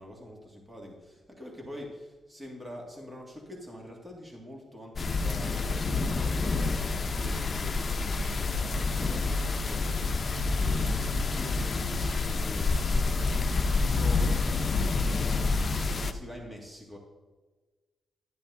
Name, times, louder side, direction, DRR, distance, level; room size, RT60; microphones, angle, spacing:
voice 1, 0.0-10.0 10.4-10.7 11.3-12.8 13.3-15.2 15.5-17.0, equal, 20° right, -1 dB, 2.0 m, -45 dB
sound 1, 5.0-16.1, left 3 dB, 35° left, 0.7 m, -28 dB
12.0 x 10.5 x 2.7 m, 1.3 s
cardioid pair, 105°, 0 cm